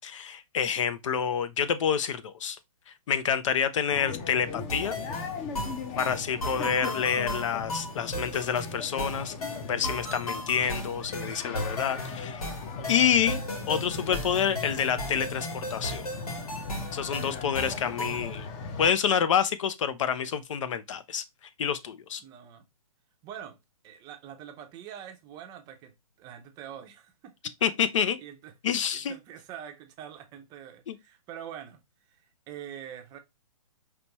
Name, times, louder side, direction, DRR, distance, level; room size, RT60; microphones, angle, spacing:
voice 1, 0.0-2.6 3.1-5.0 6.0-9.3 9.6-12.4 12.9-13.4 13.7-16.0 16.9-18.5 18.8-21.2 21.6-22.2 27.6-28.2 28.6-29.2 30.9-31.0, left 8 dB, 60° left, 0.7 m, -28 dB
sound 1, 3.9-18.9, left 4 dB, 30° left, 0.9 m, -38 dB
sound 2, 4.7-18.3, equal, 80° left, 2.8 m, -36 dB
voice 2, 6.0-6.7 22.2-22.6 23.2-23.6 23.8-25.9 26.2-27.3 28.2-28.5 28.9-31.8 32.1-33.2, right 9 dB, 20° right, 0.7 m, -44 dB
5.1 x 3.1 x 2.9 m
hypercardioid pair, 140°, 18 cm